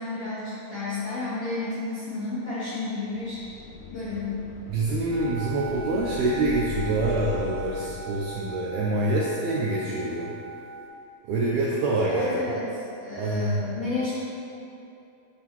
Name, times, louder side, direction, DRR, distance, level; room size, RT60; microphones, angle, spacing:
voice 1, 0.0-3.4 3.9-4.4 12.1-14.1, left 3 dB, 70° left, -11 dB, 1.4 m, -31 dB
sound 1, 3.1-8.7, left 8 dB, 85° left, 2.4 m, -39 dB
voice 2, 4.7-10.3 11.3-12.3 13.1-13.6, right 2 dB, 85° right, -4 dB, 1.7 m, -26 dB
sound 2, 5.1-10.9, right 3 dB, 65° right, 2.3 m, -39 dB
9.2 x 4.0 x 2.9 m, 2.7 s
omnidirectional pair, 4.0 m